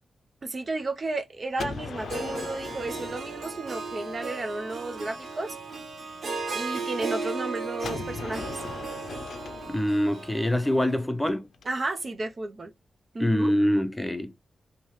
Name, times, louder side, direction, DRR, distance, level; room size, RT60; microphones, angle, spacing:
voice 1, 0.4-5.6 6.5-8.6 11.7-12.7 13.1-13.5, right 2 dB, 45° right, 0.5 m, -33 dB
Gunshot gunfire, 1.6-4.4 7.8-11.6, left 4 dB, 75° left, 0.4 m, -39 dB
Harp, 2.0-11.0, right 3 dB, 60° right, 1.1 m, -36 dB
voice 2, 9.7-11.5 13.2-14.3, left 1 dB, 10° left, 0.6 m, -25 dB
3.0 x 2.8 x 3.0 m
cardioid pair, 65°, 0 cm